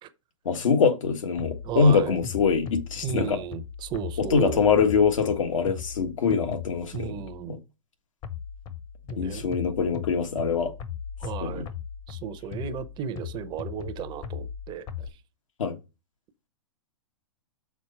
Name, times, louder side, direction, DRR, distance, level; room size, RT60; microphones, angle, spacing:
voice 1, 0.4-3.4 4.2-7.2 7.5-7.6 9.2-10.7 11.4-11.7 15.6-15.7, left 5 dB, 75° left, 1.4 m, -24 dB
sound 1, 1.4-7.4 8.2-15.1, left 7 dB, 30° left, 0.9 m, -38 dB
voice 2, 1.6-2.2 3.0-4.6 6.9-7.6 9.1-9.5 11.2-11.7 12.1-15.1, right 9 dB, 30° right, 0.7 m, -34 dB
6.1 x 4.1 x 5.5 m
hypercardioid pair, 120°, 17 cm